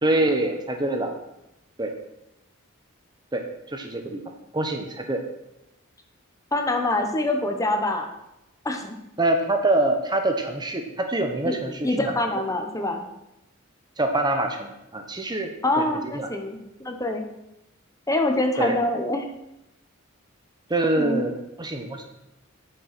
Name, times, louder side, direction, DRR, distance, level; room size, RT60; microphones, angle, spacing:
voice 1, 0.0-1.2 1.8-1.9 3.3-4.2 4.5-5.2 9.2-12.1 14.0-16.3 18.6-18.8 20.7-22.1, right 2 dB, 20° right, 4 dB, 0.9 m, -25 dB
voice 2, 6.5-8.1 8.6-9.0 11.4-11.5 11.8-13.0 15.6-17.2 18.1-19.3 21.0-21.3, left 2 dB, 15° left, 4 dB, 1.0 m, -25 dB
10.0 x 6.6 x 6.0 m, 0.89 s
head